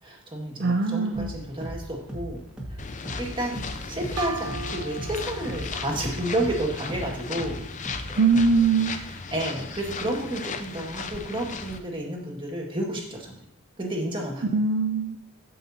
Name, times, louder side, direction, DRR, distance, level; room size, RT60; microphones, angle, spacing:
voice 1, 0.0-2.4 2.7-2.8 3.2-7.6 9.1-13.4 13.8-14.6, right 1 dB, 20° right, -2 dB, 1.9 m, -31 dB
voice 2, 0.6-1.3 8.2-9.0 14.4-15.2, right 4 dB, 45° right, 4 dB, 0.5 m, -22 dB
sound 1, 1.1-8.8, right 1 dB, 5° right, 1.8 m, -38 dB
sound 2, 2.8-11.8, left 5 dB, 35° left, 0.5 m, -36 dB
sound 3, 4.2-7.7, right 4 dB, 85° right, 0.8 m, -40 dB
14.0 x 5.5 x 2.8 m, 0.72 s
head